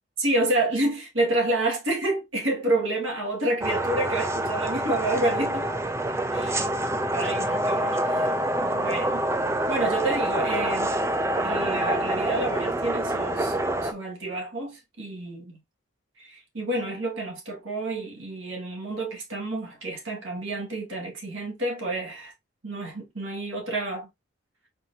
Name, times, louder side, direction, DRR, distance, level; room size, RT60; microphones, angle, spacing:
voice 1, 0.2-5.7 6.3-6.7 7.1-10.9 11.4-13.6 13.8-15.6 16.2-22.3 22.6-24.1, right 2 dB, 75° right, 2.2 m, -29 dB
sound 1, 3.6-13.9, right 1 dB, 15° right, 0.4 m, -26 dB
4.4 x 3.9 x 2.9 m
head